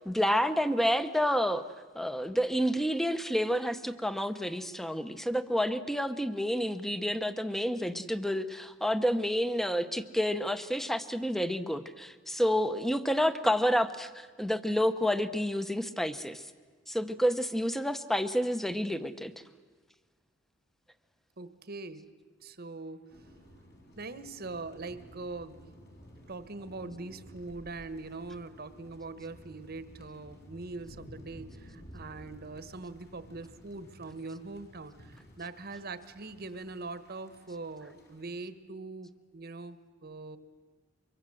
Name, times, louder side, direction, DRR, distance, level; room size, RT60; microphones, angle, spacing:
voice 1, 0.0-1.6 1.9-16.4 16.9-19.3, equal, ahead, 12 dB, 0.8 m, -29 dB
voice 2, 21.4-22.1 22.4-23.1 24.0-25.6 26.3-40.4, right 3 dB, 50° right, 13 dB, 1.2 m, -42 dB
sound 1, 23.1-38.4, equal, 60° left, 4.7 m, -53 dB
24.5 x 23.0 x 7.7 m, 1.5 s
head